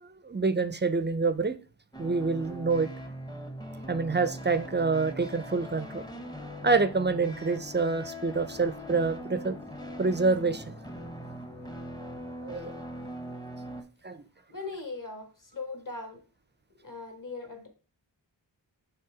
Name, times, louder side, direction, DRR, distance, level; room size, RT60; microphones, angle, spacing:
voice 1, 0.0-1.6 2.0-2.9 3.9-6.0 6.6-9.6 10.0-10.7 12.4-12.8 14.0-14.2, right 4 dB, 25° right, 12 dB, 0.5 m, -27 dB
sound 1, 1.9-13.8, equal, 10° left, 0.8 m, -41 dB
voice 2, 14.5-16.2 16.8-17.7, left 3 dB, 45° left, 4 dB, 1.6 m, -39 dB
5.7 x 3.4 x 4.7 m, 0.37 s
wide cardioid pair, 40°, 46 cm